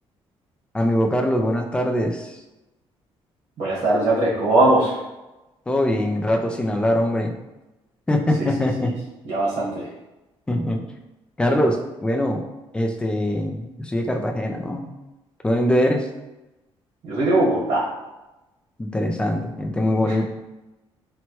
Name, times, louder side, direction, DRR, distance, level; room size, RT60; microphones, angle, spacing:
voice 1, 0.7-2.4 5.7-7.3 8.1-8.9 10.5-10.8 11.4-12.5 12.7-14.9 15.4-16.1 18.8-20.3, left 1 dB, 10° left, 3 dB, 0.3 m, -22 dB
voice 2, 3.6-4.9 8.4-8.5 9.2-9.9 17.0-17.9 20.0-20.1, right 2 dB, 75° right, -6 dB, 1.2 m, -20 dB
4.4 x 2.2 x 2.9 m, 1.0 s
cardioid pair, 165°, 10 cm